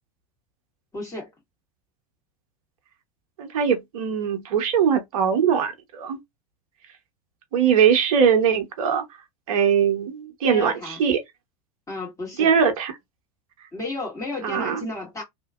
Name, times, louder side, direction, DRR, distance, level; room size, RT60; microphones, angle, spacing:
voice 1, 0.9-1.3 10.4-11.0 11.9-12.5 13.7-15.2, left 2 dB, 15° left, 1.7 m, -32 dB
voice 2, 3.4-6.2 7.5-9.0 9.5-11.2 12.4-12.9 14.4-14.9, right 7 dB, 60° right, 1.0 m, -21 dB
2.9 x 2.4 x 2.4 m
figure-of-eight pair, 80°, 20 cm